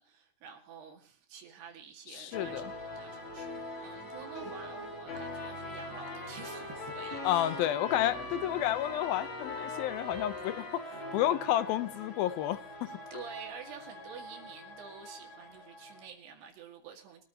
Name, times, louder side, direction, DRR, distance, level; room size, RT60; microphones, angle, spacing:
voice 1, 0.0-7.6 13.1-17.2, right 7 dB, 75° right, 4.1 m, -49 dB
voice 2, 2.1-2.7 7.2-10.8 11.1-12.9, left 13 dB, 75° left, 2.5 m, -31 dB
sound 1, 2.3-16.1, left 1 dB, 30° left, 5.4 m, -43 dB
Trumpet, 5.1-11.8, left 3 dB, 45° left, 4.4 m, -44 dB
sound 2, 7.1-9.1 10.1-12.5, left 2 dB, 45° right, 0.7 m, -49 dB
24.0 x 14.0 x 3.0 m
omnidirectional pair, 4.7 m